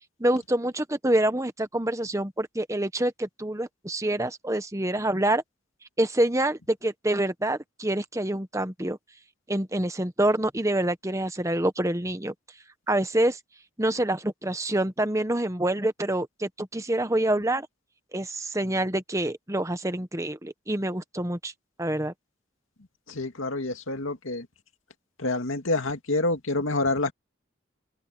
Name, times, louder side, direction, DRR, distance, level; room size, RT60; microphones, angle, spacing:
voice 1, 0.2-5.4 6.0-9.0 9.5-12.3 12.9-13.4 13.8-17.7 18.1-21.5 21.8-22.1, right 1 dB, 15° right, 1.1 m, -26 dB
voice 2, 23.1-24.5 25.2-27.1, left 2 dB, 80° left, 2.3 m, -27 dB
open air
head